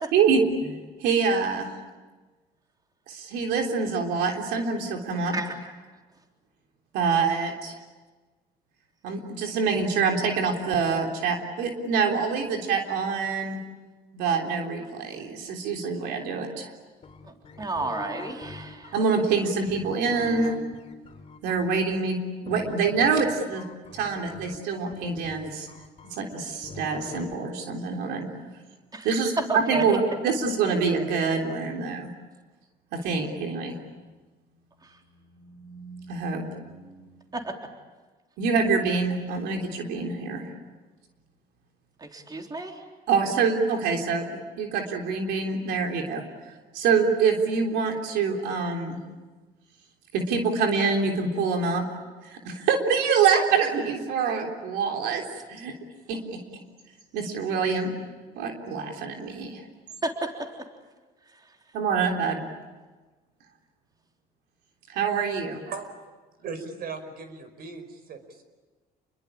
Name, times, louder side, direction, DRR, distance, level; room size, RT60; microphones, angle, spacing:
voice 1, 0.1-0.7 1.0-1.7 3.1-5.3 6.9-7.8 9.0-13.6 14.1-16.7 18.9-20.5 21.4-22.2 22.4-23.6 23.9-25.7 26.1-28.3 29.0-32.1 32.9-33.8 35.4-36.9 38.4-40.5 43.1-46.2 46.7-49.0 50.1-51.8 52.2-55.2 55.5-55.7 56.1-56.4 57.1-57.9 58.4-59.6 61.7-62.5 64.9-65.6, right 5 dB, 90° right, 2 dB, 3.5 m, -26 dB
sound 1, 17.0-21.8 22.5-27.3, left 4 dB, 35° left, 4.0 m, -43 dB
voice 2, 17.3-18.9 28.9-29.1 29.5-30.0 37.3-37.6 42.0-42.8 60.0-60.5, right 2 dB, 25° right, 2 dB, 3.7 m, -31 dB
voice 3, 66.4-68.5, right 5 dB, 65° right, 9 dB, 5.2 m, -38 dB
29.0 x 22.5 x 8.7 m, 1.3 s
cardioid pair, 110°, 17 cm